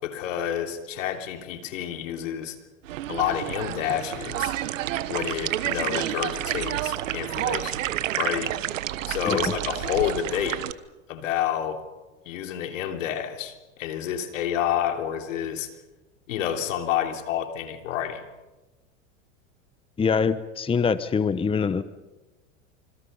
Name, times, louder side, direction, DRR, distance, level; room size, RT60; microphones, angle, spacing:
voice 1, 0.0-2.6 3.1-4.5 5.1-7.8 8.2-8.6 9.1-10.6 11.1-11.8 12.2-15.7 16.3-18.2, left 10 dB, 80° left, 5 dB, 3.3 m, -29 dB
sound 1, 2.9-10.7, right 13 dB, 85° right, 1.2 m, -29 dB
voice 2, 20.0-21.8, left 5 dB, 15° left, 14 dB, 0.9 m, -24 dB
26.5 x 26.5 x 5.6 m, 1.1 s
hypercardioid pair, 105°, 38 cm